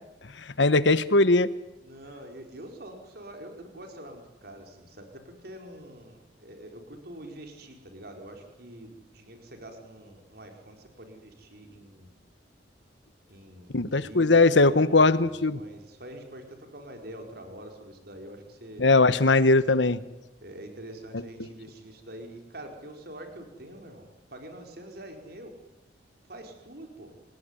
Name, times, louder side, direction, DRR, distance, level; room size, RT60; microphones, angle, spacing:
voice 1, 0.6-1.5 13.7-15.6 18.8-20.0, left 3 dB, 85° left, 15 dB, 1.2 m, -20 dB
voice 2, 1.8-12.1 13.3-18.9 20.4-25.5 26.3-27.1, right 1 dB, 60° right, 4 dB, 4.8 m, -45 dB
28.5 x 18.5 x 9.9 m, 0.99 s
head